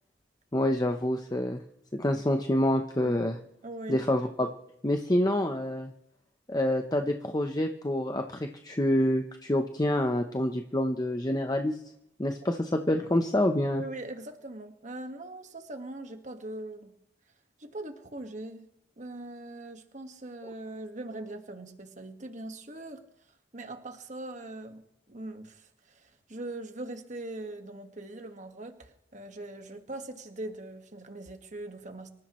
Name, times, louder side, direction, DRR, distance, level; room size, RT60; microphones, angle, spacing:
voice 1, 0.5-1.6 1.9-3.4 3.9-4.5 4.8-5.9 6.5-11.8 12.2-13.8, left 1 dB, 20° left, 5 dB, 0.8 m, -27 dB
voice 2, 3.6-4.0 13.8-16.9 17.6-18.7 19.0-23.0 23.5-32.1, right 2 dB, 40° right, 6 dB, 1.6 m, -41 dB
26.0 x 14.5 x 3.1 m, 0.76 s
head